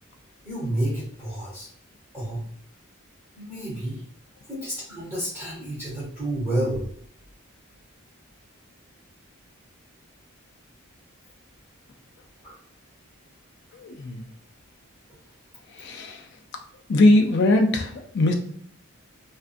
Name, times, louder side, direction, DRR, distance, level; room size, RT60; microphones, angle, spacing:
voice 1, 0.4-1.7 2.1-2.4 3.4-4.0 4.5-6.9 12.4-12.6, right 1 dB, 10° right, -9 dB, 1.0 m, -30 dB
voice 2, 13.7-14.2 15.7-16.3 16.9-18.3, left 2 dB, 55° left, 3 dB, 0.4 m, -21 dB
2.5 x 2.3 x 2.4 m, 0.63 s
head